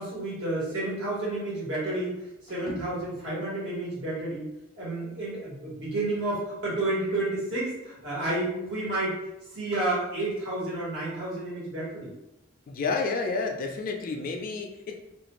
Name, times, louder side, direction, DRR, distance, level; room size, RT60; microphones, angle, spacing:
voice 1, 0.0-2.1 2.4-4.5 4.8-9.2 9.5-12.1, right 2 dB, 75° right, -7 dB, 1.3 m, -30 dB
voice 2, 12.7-14.9, left 4 dB, 45° left, 3 dB, 0.3 m, -30 dB
2.5 x 2.2 x 3.0 m, 0.92 s
head